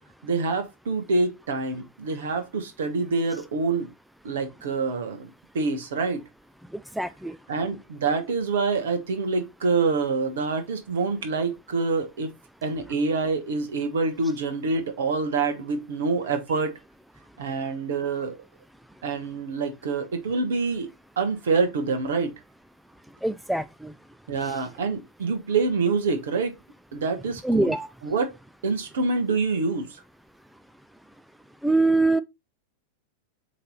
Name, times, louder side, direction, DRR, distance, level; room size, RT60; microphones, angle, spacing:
voice 1, 0.2-3.9 4.2-5.3 5.5-6.2 7.5-12.3 12.6-16.7 17.4-18.3 19.0-20.9 21.2-22.3 24.3-26.5 26.9-27.7 28.0-28.3 28.6-30.0, right 4 dB, 60° right, 1.5 m, -26 dB
voice 2, 7.0-7.4 23.2-23.9 27.4-27.9 31.6-32.2, right 2 dB, ahead, 0.4 m, -23 dB
7.4 x 3.3 x 4.1 m
figure-of-eight pair, 90°, 0 cm